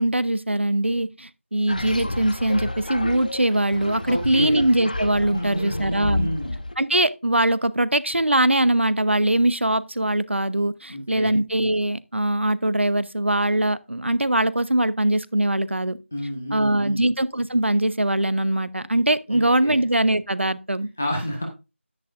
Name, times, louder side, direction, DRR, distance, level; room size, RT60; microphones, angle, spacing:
voice 1, 0.0-6.3 6.8-16.0 16.5-20.9, right 1 dB, 65° right, 0.9 m, -22 dB
sound 1, 1.7-6.7, left 1 dB, 40° left, 1.1 m, -31 dB
voice 2, 4.0-4.6 5.3-6.6 10.9-11.3 16.1-17.1 19.3-19.8 21.0-21.4, equal, 5° left, 0.5 m, -30 dB
10.5 x 10.0 x 2.5 m
figure-of-eight pair, 170°, 7 cm